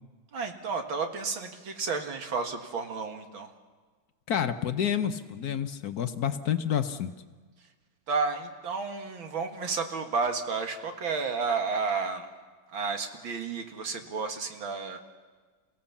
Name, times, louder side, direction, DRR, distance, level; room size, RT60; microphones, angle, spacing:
voice 1, 0.3-3.5 8.1-12.3 12.7-15.0, right 4 dB, 90° right, 5 dB, 2.6 m, -31 dB
voice 2, 4.3-7.1, left 9 dB, 60° left, 9 dB, 1.2 m, -29 dB
28.5 x 17.0 x 7.3 m, 1.4 s
omnidirectional pair, 2.1 m